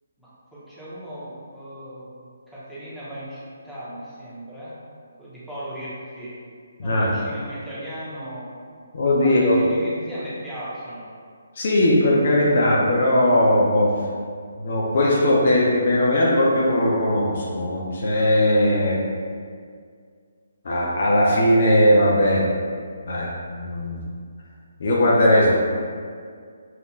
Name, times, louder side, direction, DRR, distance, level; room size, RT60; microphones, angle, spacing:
voice 1, 0.2-4.7 5.2-6.3 6.8-8.5 9.2-11.1, equal, 5° left, -12 dB, 1.2 m, -37 dB
voice 2, 8.9-9.5 11.6-13.9 14.6-19.0 20.6-22.5 23.0-24.1 24.8-25.6, left 1 dB, 55° left, -4 dB, 0.7 m, -19 dB
5.3 x 2.8 x 2.5 m, 2.1 s
figure-of-eight pair, 145°, 0 cm